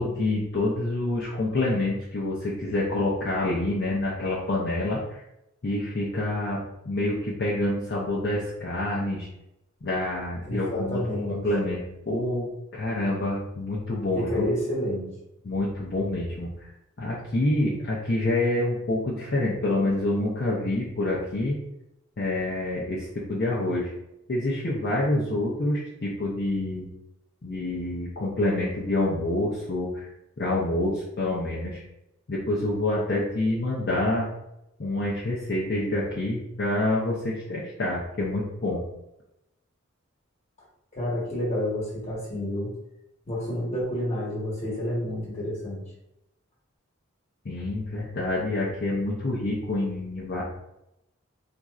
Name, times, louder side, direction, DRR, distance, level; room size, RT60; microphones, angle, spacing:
voice 1, 0.0-5.2 5.6-6.6 6.8-9.3 9.8-11.0 11.3-11.8 12.1-14.4 15.4-16.7 17.0-21.6 22.2-23.9 24.3-26.8 27.4-30.1 30.4-31.8 32.3-34.3 34.8-38.8 47.4-50.4, left 2 dB, 50° left, -5 dB, 0.6 m, -27 dB
voice 2, 10.5-11.4 14.1-15.1 40.9-42.7 43.3-45.8, left 1 dB, 35° left, -5 dB, 1.2 m, -29 dB
4.1 x 2.5 x 2.4 m, 0.87 s
head